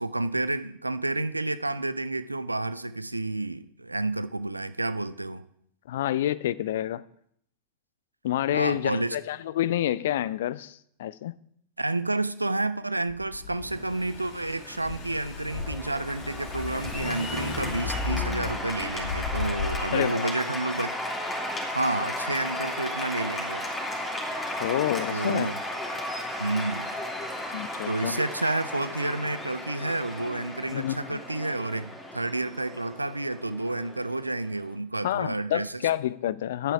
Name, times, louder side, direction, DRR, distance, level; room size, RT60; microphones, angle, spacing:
voice 1, 0.0-5.5 8.5-9.2 11.8-21.0 21.7-23.7 25.1-25.6 26.4-26.9 27.9-35.8, right 2 dB, 85° right, 0.5 m, -30 dB
voice 2, 5.9-7.0 8.2-11.3 19.9-20.3 24.6-25.5 27.5-28.2 30.7-31.2 35.0-36.7, left 12 dB, 55° left, 0.4 m, -28 dB
Car / Engine, 13.1-20.0, left 4 dB, 40° left, 2.1 m, -35 dB
Cheering / Applause, 15.5-34.7, left 1 dB, 15° left, 2.6 m, -35 dB
10.5 x 9.0 x 4.8 m
figure-of-eight pair, 90°, 0 cm